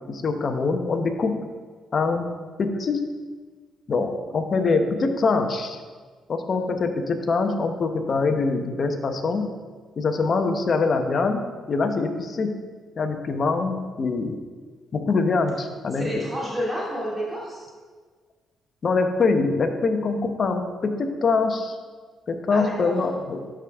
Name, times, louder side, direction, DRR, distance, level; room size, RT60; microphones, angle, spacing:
voice 1, 0.1-1.4 1.9-2.3 2.6-3.0 3.9-5.8 6.3-9.5 10.0-12.6 13.0-14.4 14.9-16.3 18.8-21.8 22.3-23.4, left 4 dB, 45° left, 6 dB, 0.9 m, -24 dB
voice 2, 15.9-17.7 22.5-23.0, equal, 15° right, -5 dB, 2.4 m, -30 dB
12.5 x 5.0 x 3.5 m, 1.5 s
cardioid pair, 90°, 0 cm